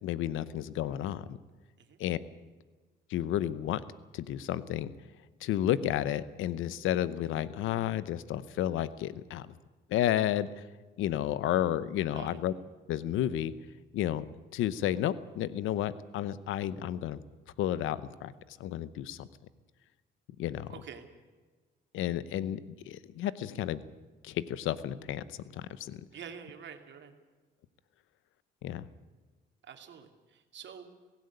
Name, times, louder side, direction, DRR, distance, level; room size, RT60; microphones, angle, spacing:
voice 1, 0.0-1.4 2.0-2.2 3.1-3.8 4.1-4.9 5.4-9.5 9.9-10.7 11.0-12.5 12.9-13.5 13.9-14.3 14.5-17.2 17.6-18.3 18.6-19.3 20.4-20.7 21.9-22.6 22.9-23.8 24.2-25.2 25.5-26.0 28.6-28.9, left 12 dB, 85° left, 16 dB, 0.9 m, -31 dB
voice 2, 20.7-21.1 26.1-27.1 29.6-30.9, right 7 dB, 65° right, 6 dB, 2.7 m, -47 dB
17.0 x 16.5 x 9.6 m, 1.3 s
cardioid pair, 90°, 20 cm